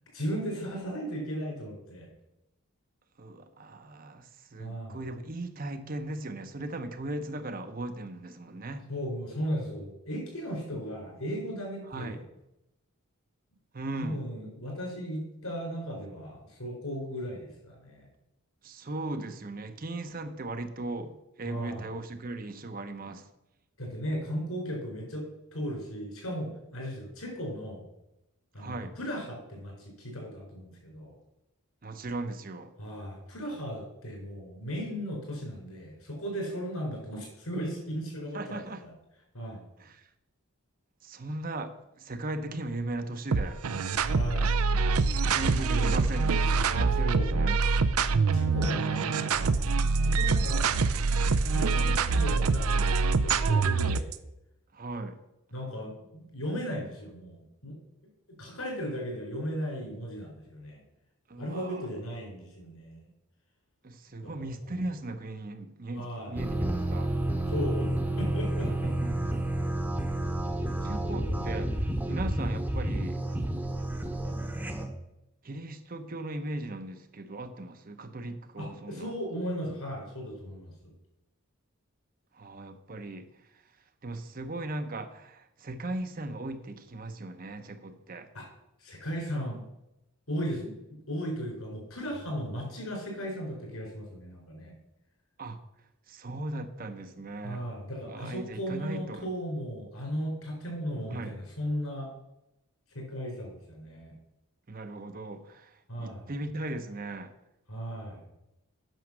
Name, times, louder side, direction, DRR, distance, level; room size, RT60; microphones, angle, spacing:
voice 1, 0.1-2.1 4.6-5.0 8.9-12.2 14.0-18.0 21.4-21.9 23.8-25.2 25.5-27.8 28.5-31.1 32.8-38.9 39.3-39.6 44.0-44.6 45.7-46.0 47.0-47.4 48.3-49.6 50.0-50.8 51.5-54.1 55.5-57.8 58.3-60.8 61.4-63.1 64.2-64.7 65.9-66.4 67.5-68.9 71.2-71.8 78.6-80.7 88.3-88.4 88.8-89.6 90.3-90.7 91.1-94.7 97.4-102.1 102.9-104.1 105.9-106.3 107.7-108.2, equal, 75° left, 0 dB, 4.5 m, -36 dB
voice 2, 3.2-8.9 11.8-12.2 13.7-14.2 18.6-23.3 28.6-28.9 31.8-32.7 38.3-38.9 39.8-40.1 41.0-43.6 45.3-47.6 54.7-55.2 61.3-61.9 63.8-67.1 68.7-69.6 70.8-73.2 75.4-79.1 82.3-83.6 84.0-88.3 95.4-95.6 96.1-97.7 98.1-99.3 101.1-101.4 104.7-107.3, right 2 dB, 40° right, 8 dB, 0.7 m, -38 dB
sound 1, 43.3-54.1, right 4 dB, 80° right, 0.5 m, -25 dB
sound 2, 66.4-74.9, right 1 dB, 10° right, 0.9 m, -30 dB
9.2 x 6.4 x 6.2 m, 0.89 s
head